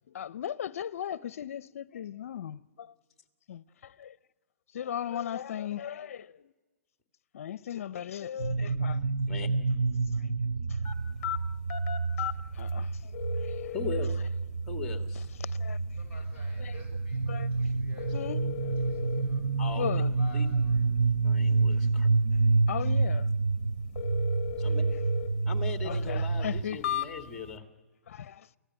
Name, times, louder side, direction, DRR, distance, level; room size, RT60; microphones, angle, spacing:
voice 1, 0.0-2.9 3.5-4.2 4.7-6.5 7.3-9.0 10.2-10.3 10.7-10.8 12.5-13.1 13.6-14.1 15.4-15.8 16.6-16.8 17.3-17.5 18.1-18.5 19.7-20.1 22.7-23.2 25.8-26.8 28.1-28.5, left 9 dB, 65° left, 0.6 m, -37 dB
sound 1, 8.4-26.6, right 3 dB, 75° right, 0.7 m, -28 dB
sound 2, 10.8-27.6, left 12 dB, 30° left, 1.0 m, -40 dB
voice 2, 13.7-14.1 14.7-15.3 19.6-19.9 20.3-20.5 21.2-22.1 24.6-24.8 25.5-27.6, left 5 dB, 5° left, 1.8 m, -39 dB
voice 3, 16.0-18.2 18.8-20.8, left 1 dB, 15° right, 5.8 m, -53 dB
28.0 x 14.5 x 8.9 m
hypercardioid pair, 165°, 8 cm